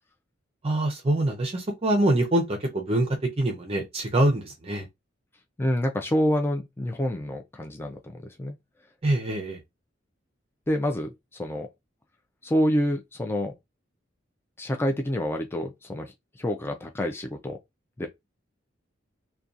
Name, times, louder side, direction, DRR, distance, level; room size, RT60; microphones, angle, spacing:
voice 1, 0.6-3.1 3.4-4.8 9.0-9.6, right 1 dB, 30° right, 0.5 m, -24 dB
voice 2, 5.6-8.6 10.7-11.7 12.4-13.6 14.6-17.6 18.0-18.1, equal, 15° left, 0.4 m, -27 dB
2.7 x 2.2 x 2.4 m
head